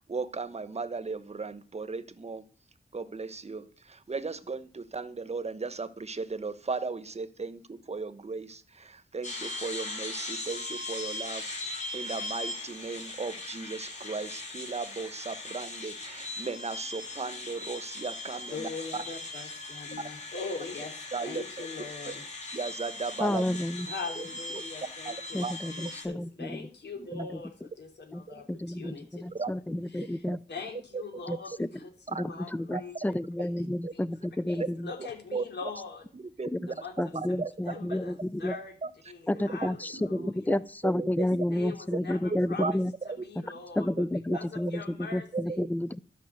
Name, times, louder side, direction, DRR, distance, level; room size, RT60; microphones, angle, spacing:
voice 1, 0.0-2.5 2.9-19.0 19.9-20.0 21.1-21.7 22.5-23.6 24.2-24.3 24.5-24.6 25.0-25.5 27.0-27.1 28.3-28.4 29.3-29.5 30.3-30.4 30.7-31.0 32.1-32.3 32.7-32.8 33.7-33.9 35.3-35.5 36.1-36.7 37.1-37.5 38.8-38.9 39.3-39.5 39.9-40.3 40.8-41.1 42.0-42.7 43.1-43.2 43.9-44.0 44.3-44.4 45.3-45.6, right 4 dB, 40° right, 1.1 m, -36 dB
sound 1, 9.2-26.0, left 2 dB, 45° left, 6.6 m, -39 dB
voice 2, 18.5-22.2 23.8-27.5 27.8-29.5 29.9-33.7 33.9-34.0 34.5-36.0 36.7-37.1 37.6-38.7 39.1-40.6 41.2-42.8 43.2-43.9 44.3-45.6, left 4 dB, 80° left, 3.2 m, -42 dB
voice 3, 23.2-23.9 25.3-26.7 27.1-27.3 28.1-28.2 28.5-30.4 31.3-31.7 32.2-32.3 32.5-34.6 36.5-36.6 37.0-38.5 39.3-39.4 39.6-39.7 40.1-42.9 43.8-44.8 45.1-46.0, left 1 dB, 10° left, 0.5 m, -30 dB
12.5 x 6.1 x 7.9 m
wide cardioid pair, 80°, 17 cm